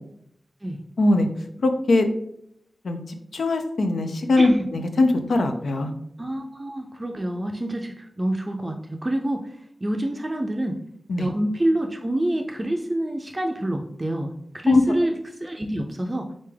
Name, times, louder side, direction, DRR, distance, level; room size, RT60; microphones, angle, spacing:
voice 1, 1.6-2.1 2.8-5.9 11.1-11.3 14.7-14.8, left 2 dB, 90° left, 6 dB, 0.4 m, -21 dB
voice 2, 4.4-4.7 6.2-10.8 11.2-16.3, right 1 dB, 30° right, 3 dB, 0.4 m, -27 dB
3.9 x 3.4 x 3.3 m, 0.73 s
cardioid pair, 55°, 0 cm